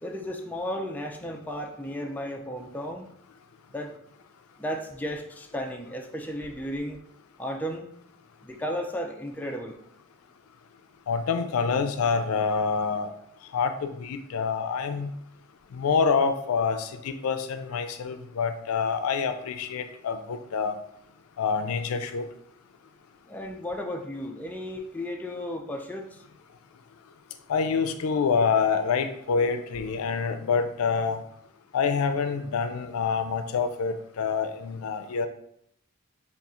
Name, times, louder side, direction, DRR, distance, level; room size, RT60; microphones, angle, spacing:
voice 1, 0.0-3.1 3.7-4.0 4.6-7.0 7.4-7.8 8.4-9.8 23.3-26.2, equal, 10° left, 2 dB, 0.3 m, -34 dB
voice 2, 11.1-13.1 13.5-15.1 15.7-20.7 21.4-22.2 27.5-31.2 31.7-35.3, left 5 dB, 90° left, 8 dB, 0.4 m, -26 dB
4.2 x 2.3 x 3.6 m, 0.73 s
head